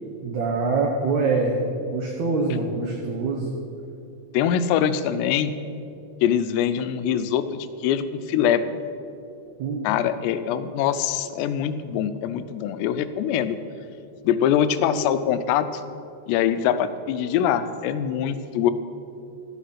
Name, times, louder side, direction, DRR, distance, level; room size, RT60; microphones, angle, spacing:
voice 1, 0.2-1.6 1.8-3.5 9.6-9.8, right 4 dB, 80° right, -1 dB, 1.6 m, -24 dB
voice 2, 4.3-5.5 6.2-8.7 9.8-13.6 14.2-15.8 16.3-18.7, left 9 dB, 85° left, 11 dB, 2.7 m, -23 dB
13.5 x 8.3 x 5.7 m, 2.7 s
omnidirectional pair, 4.9 m